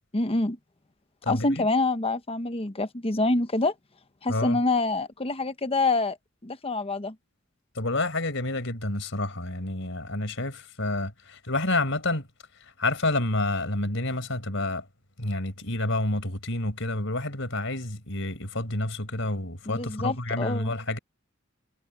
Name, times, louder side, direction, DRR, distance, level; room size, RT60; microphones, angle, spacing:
voice 1, 0.1-0.6 1.3-3.7 4.2-6.2 6.4-7.1 19.7-20.7, left 2 dB, 30° left, 1.1 m, -26 dB
voice 2, 1.2-1.6 4.3-4.6 7.8-12.3 12.6-14.9 15.2-21.0, left 2 dB, 70° left, 5.3 m, -29 dB
head